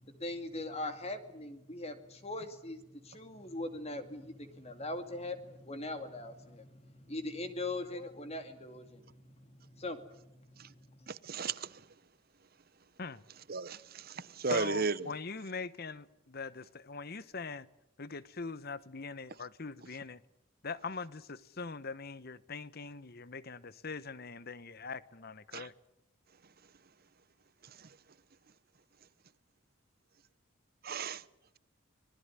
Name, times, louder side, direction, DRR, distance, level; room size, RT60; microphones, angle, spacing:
voice 1, 0.0-11.1, left 2 dB, 30° left, 2.3 m, -41 dB
voice 2, 11.1-11.7 13.5-13.8 14.4-14.9 25.5-25.7 30.8-31.2, right 5 dB, 45° right, 0.9 m, -33 dB
voice 3, 14.5-17.7 18.0-20.2 20.6-25.7, left 4 dB, 50° left, 1.0 m, -42 dB
25.0 x 20.0 x 9.7 m
head